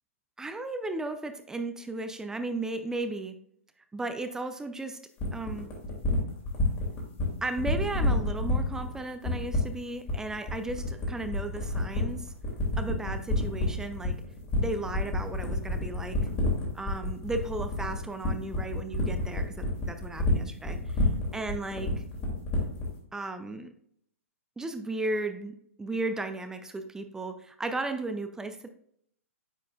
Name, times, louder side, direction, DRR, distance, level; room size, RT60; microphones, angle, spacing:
voice 1, 0.4-3.4 3.9-5.0 5.3-5.7 7.4-12.3 12.8-14.2 14.6-16.2 16.7-21.9 23.1-23.7 24.6-28.7, right 2 dB, 5° right, 8 dB, 0.4 m, -35 dB
sound 1, 5.2-22.9, left 1 dB, 35° left, 2.4 m, -29 dB
9.5 x 4.5 x 2.4 m, 0.68 s
figure-of-eight pair, 115°, 8 cm